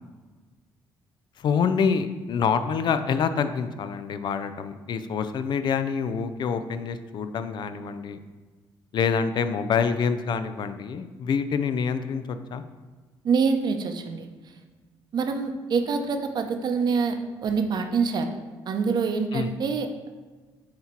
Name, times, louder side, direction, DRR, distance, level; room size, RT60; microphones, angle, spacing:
voice 1, 1.4-8.2 8.9-12.6 19.3-19.5, left 6 dB, 55° left, 10 dB, 0.4 m, -26 dB
voice 2, 13.2-14.3 15.1-18.3 18.7-20.1, right 5 dB, 55° right, 6 dB, 0.7 m, -25 dB
7.5 x 2.9 x 4.4 m, 1.4 s
cardioid pair, 80°, 9 cm